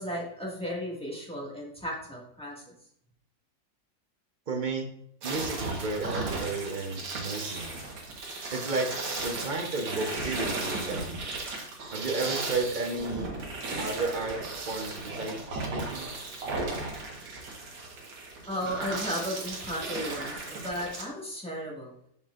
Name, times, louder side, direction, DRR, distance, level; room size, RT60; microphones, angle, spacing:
voice 1, 0.0-2.6 18.5-21.9, equal, 5° left, -4 dB, 1.6 m, -35 dB
voice 2, 4.5-4.9 5.2-7.8 8.5-8.9 9.2-11.2 11.9-13.3 13.8-16.1, right 3 dB, 40° right, 3 dB, 0.7 m, -33 dB
sound 1, 5.2-21.0, right 3 dB, 90° right, 2.1 m, -35 dB
7.2 x 6.1 x 2.5 m, 0.71 s
omnidirectional pair, 2.0 m